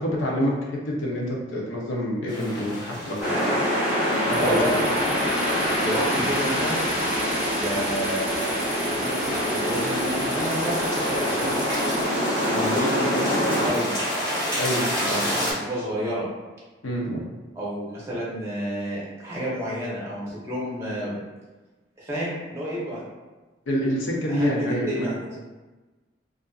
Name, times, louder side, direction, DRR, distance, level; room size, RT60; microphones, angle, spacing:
voice 1, 0.0-3.5 4.3-4.8 14.5-14.9 16.8-17.3 23.7-25.1, equal, 85° left, -2 dB, 0.6 m, -27 dB
sound 1, 2.3-15.5, equal, 25° left, 1.1 m, -31 dB
sound 2, 3.2-13.7, equal, 45° left, 1.1 m, -25 dB
voice 2, 4.3-5.1 5.4-6.8 7.5-8.6 8.9-12.0 12.4-13.9 15.1-16.3 17.5-21.2 22.0-23.0 24.3-25.4, equal, 15° right, -7 dB, 0.6 m, -30 dB
sound 3, 4.3-12.0, right 4 dB, 65° right, 0.5 m, -39 dB
2.4 x 2.4 x 2.3 m, 1.2 s
head